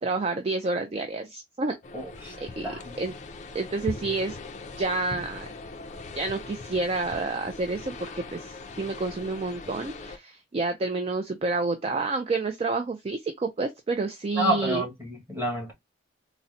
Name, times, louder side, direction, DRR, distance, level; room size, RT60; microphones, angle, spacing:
voice 1, 0.0-1.8 2.4-2.7 3.0-3.1 3.5-4.4 4.8-5.5 6.2-14.8, right 3 dB, 30° right, 0.3 m, -29 dB
sound 1, 1.8-10.2, left 3 dB, 35° left, 0.4 m, -40 dB
voice 2, 1.9-2.4 2.6-3.0 14.3-15.7, right 1 dB, 10° right, 1.3 m, -29 dB
3.9 x 2.1 x 2.5 m
head